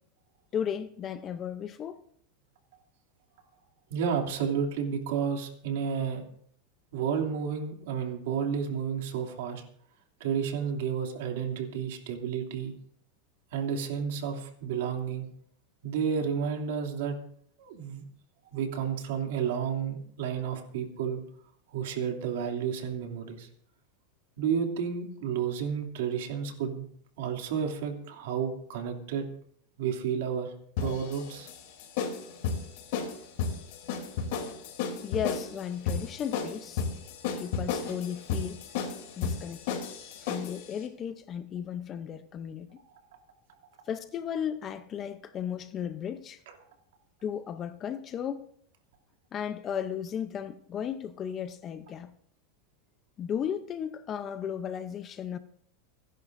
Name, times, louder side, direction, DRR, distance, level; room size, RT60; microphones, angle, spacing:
voice 1, 0.5-2.0 35.0-36.8 37.3-38.6 39.2-39.9 40.2-42.8 43.9-46.4 47.2-48.5 49.3-52.1 53.2-55.4, left 8 dB, 25° left, 0.7 m, -35 dB
voice 2, 3.9-6.2 6.9-9.6 10.2-12.7 13.5-15.3 15.8-17.2 17.6-18.0 18.4-21.2 21.7-23.5 24.4-26.9 27.2-29.3 29.8-31.5, right 7 dB, 75° right, 2.8 m, -31 dB
sound 1, 30.8-40.6, left 6 dB, 60° left, 3.1 m, -33 dB
29.5 x 11.0 x 2.6 m
supercardioid pair, 155°, 0 cm